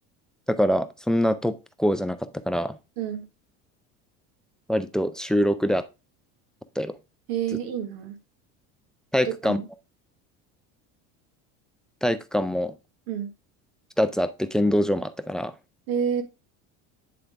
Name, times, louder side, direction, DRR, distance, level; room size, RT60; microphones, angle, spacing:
voice 1, 0.5-1.5 1.8-2.2 2.5-2.8 4.7-5.8 6.8-7.0 9.1-9.6 12.0-12.7 14.0-15.5, equal, ahead, 0.3 m, -24 dB
voice 2, 3.0-3.3 7.3-8.2 9.2-9.7 13.1-13.3 15.9-16.2, right 8 dB, 80° right, 1.5 m, -29 dB
8.4 x 3.8 x 3.3 m
supercardioid pair, 120°, 33 cm